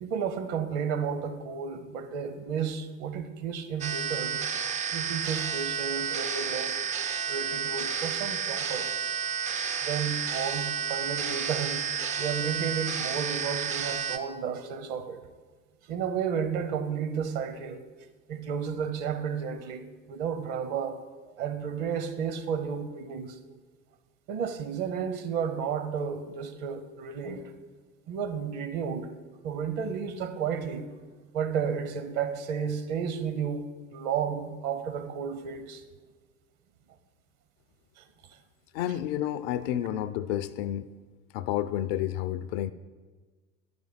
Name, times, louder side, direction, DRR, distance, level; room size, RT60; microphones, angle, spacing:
voice 1, 0.0-4.4 4.9-6.8 7.3-8.9 9.8-11.9 12.2-15.2 15.9-17.8 18.3-21.0 21.4-23.4 24.3-27.5 28.1-29.1 29.4-30.8 31.3-35.8 38.0-38.1, right 7 dB, 50° right, 9 dB, 0.9 m, -32 dB
sound 1, 3.8-14.2, right 7 dB, 20° right, 0.4 m, -31 dB
voice 2, 38.7-40.9 41.3-42.7, left 12 dB, 45° left, 14 dB, 0.4 m, -30 dB
10.0 x 5.3 x 4.1 m, 1.4 s
figure-of-eight pair, 70°, 41 cm